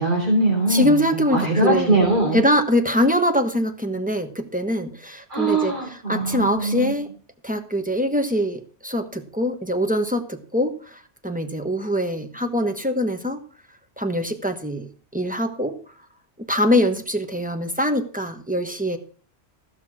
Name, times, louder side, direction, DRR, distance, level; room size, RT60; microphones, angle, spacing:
voice 1, 0.0-1.0 1.3-2.4 5.3-6.9, right 2 dB, 40° right, -3 dB, 3.3 m, -21 dB
voice 2, 0.7-2.0 2.3-7.1 7.4-13.4 14.0-15.7 16.4-19.0, equal, 5° right, 6 dB, 1.1 m, -23 dB
14.5 x 6.1 x 6.1 m, 0.44 s
omnidirectional pair, 1.2 m